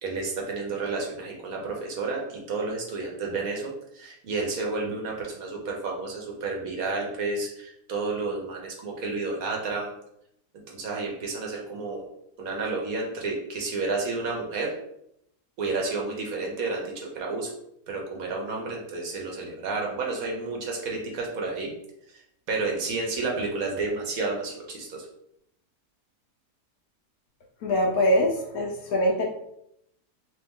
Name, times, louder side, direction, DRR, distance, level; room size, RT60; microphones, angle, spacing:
voice 1, 0.0-9.9 10.7-12.0 12.4-14.7 15.6-17.5 17.9-21.7 22.5-25.0, right 3 dB, 65° right, -1 dB, 1.1 m, -31 dB
voice 2, 27.6-29.2, equal, 70° left, 0 dB, 1.0 m, -23 dB
3.0 x 2.9 x 3.5 m, 0.78 s
omnidirectional pair, 1.8 m